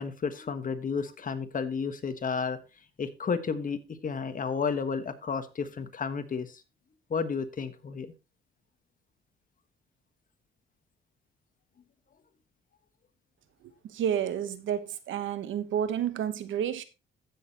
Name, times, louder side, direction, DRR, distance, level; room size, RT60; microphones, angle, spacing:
voice 1, 0.0-2.6 3.0-3.8 4.0-6.5 7.1-8.1, left 5 dB, 45° left, 1.4 m, -32 dB
voice 2, 13.9-16.8, right 9 dB, 75° right, 1.1 m, -30 dB
15.0 x 6.6 x 2.9 m
cardioid pair, 90°, 20 cm